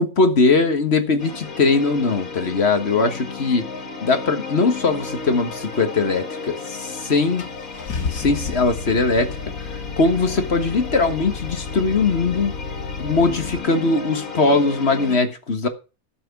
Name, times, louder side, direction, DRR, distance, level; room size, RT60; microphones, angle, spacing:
voice 1, 0.0-3.7 4.0-7.5 8.1-12.5 13.0-15.7, left 3 dB, 45° left, 1.7 m, -20 dB
sound 1, 1.2-15.2, left 4 dB, 75° left, 2.7 m, -34 dB
Car / Engine starting, 6.7-6.8 7.4-13.6, left 5 dB, 90° left, 2.0 m, -32 dB
13.0 x 6.2 x 5.9 m
omnidirectional pair, 1.5 m